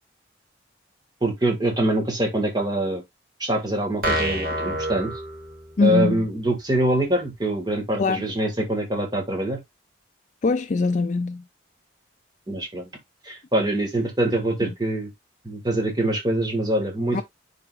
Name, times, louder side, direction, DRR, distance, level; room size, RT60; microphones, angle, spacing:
voice 1, 1.2-3.0 3.4-5.1 5.8-9.6 12.5-12.9 13.2-15.1 15.4-17.2, right 1 dB, 20° right, 1.8 m, -24 dB
sound 1, 4.0-6.0, right 1 dB, 45° right, 1.9 m, -27 dB
voice 2, 5.8-6.2 8.0-8.2 10.4-11.4 14.6-14.7 17.1-17.2, left 3 dB, 40° left, 0.3 m, -22 dB
10.5 x 3.9 x 2.5 m
head